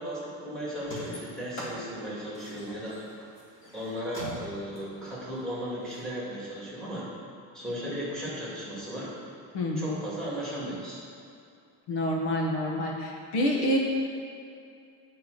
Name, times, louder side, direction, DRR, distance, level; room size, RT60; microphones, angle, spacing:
voice 1, 0.0-3.0 3.7-7.1 7.5-9.1 9.8-11.0, equal, ahead, -8 dB, 2.2 m, -36 dB
sound 1, 0.8-6.0, equal, 30° left, 1.8 m, -42 dB
voice 2, 9.5-10.0 11.9-13.8, equal, 70° left, -1 dB, 1.4 m, -27 dB
9.0 x 4.6 x 6.6 m, 2.5 s
cardioid pair, 165°, 40 cm